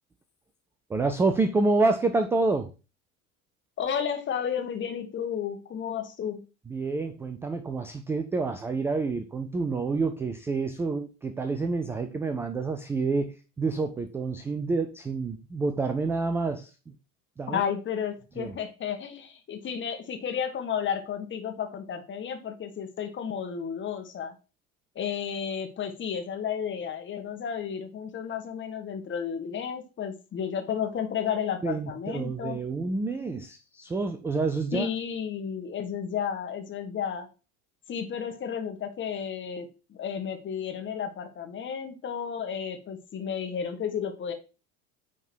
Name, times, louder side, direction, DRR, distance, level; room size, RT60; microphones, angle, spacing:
voice 1, 0.9-2.7 6.7-16.7 17.4-17.6 18.4-18.6 31.6-34.9, right 3 dB, 5° right, 8 dB, 0.3 m, -28 dB
voice 2, 3.8-6.4 17.5-24.3 24.9-32.6 34.7-37.3 37.9-44.3, left 7 dB, 25° left, 5 dB, 1.5 m, -32 dB
9.0 x 3.7 x 4.6 m, 0.32 s
figure-of-eight pair, 70°, 42 cm